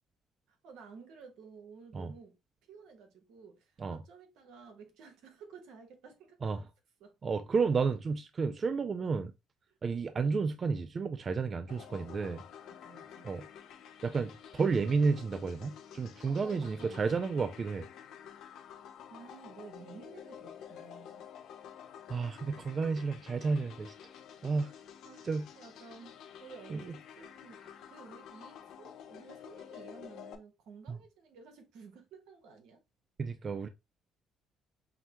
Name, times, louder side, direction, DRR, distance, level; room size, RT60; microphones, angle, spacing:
voice 1, 0.5-2.4 2.6-6.7 7.0-7.2 11.9-13.3 16.3-17.4 18.7-21.3 25.1-32.8, right 5 dB, 80° right, 1.1 m, -53 dB
voice 2, 7.2-9.3 9.8-12.4 13.2-13.5 14.0-17.9 22.1-23.9 24.4-24.7 25.2-25.5 26.7-26.8 30.9-31.0 33.2-33.7, right 4 dB, 40° right, 0.4 m, -31 dB
sound 1, 11.7-30.3, left 8 dB, 75° left, 0.7 m, -50 dB
5.7 x 2.1 x 2.9 m
supercardioid pair, 80°, 0 cm